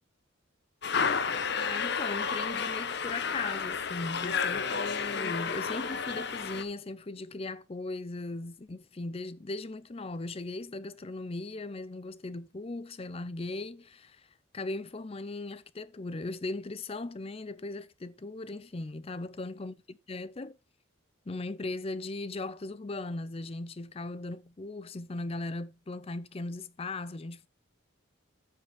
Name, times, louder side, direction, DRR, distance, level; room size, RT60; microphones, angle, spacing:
sound 1, 0.8-6.6, left 6 dB, 55° left, 0.8 m, -31 dB
voice 1, 1.6-14.3 14.5-20.6 21.3-27.5, left 2 dB, 30° left, 0.5 m, -38 dB
8.7 x 5.6 x 5.2 m
head